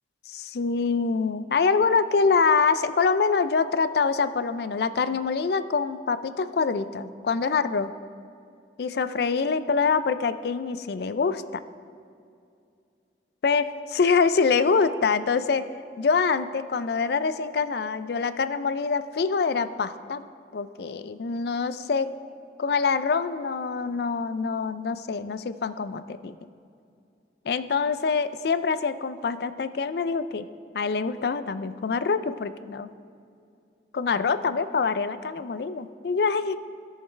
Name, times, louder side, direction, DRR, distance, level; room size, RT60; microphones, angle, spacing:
voice 1, 0.3-7.9 8.8-11.6 13.4-15.7 16.0-20.2 20.5-22.1 22.6-26.4 27.5-30.5 30.7-32.9 33.9-36.6, left 5 dB, 60° left, 13 dB, 0.4 m, -25 dB
17.0 x 6.6 x 3.3 m, 2.4 s
head